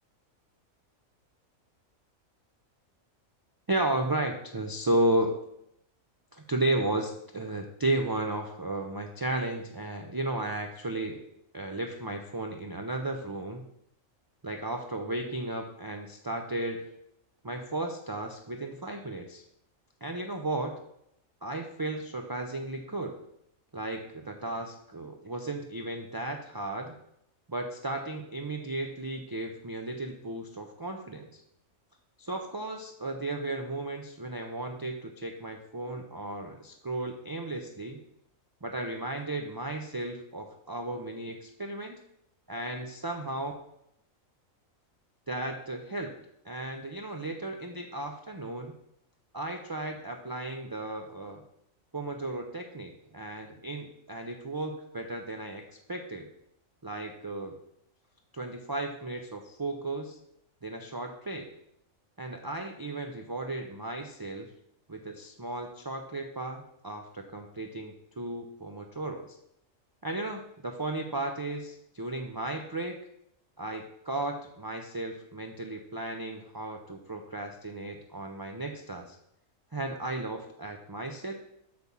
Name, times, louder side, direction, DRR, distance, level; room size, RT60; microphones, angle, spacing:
voice 1, 3.7-5.4 6.3-11.2 11.5-13.7 14.4-16.8 17.4-19.4 20.0-20.7 21.4-23.2 23.7-26.9 27.5-31.4 32.2-38.0 38.6-42.0 42.5-43.5 45.3-46.1 46.4-48.7 49.3-51.4 51.9-56.3 56.8-57.5 58.3-60.2 60.6-61.5 62.2-64.5 64.9-69.4 70.0-73.0 73.6-79.2 79.7-81.3, right 2 dB, 35° right, 2 dB, 0.4 m, -34 dB
8.3 x 4.3 x 7.0 m, 0.75 s
omnidirectional pair, 1.4 m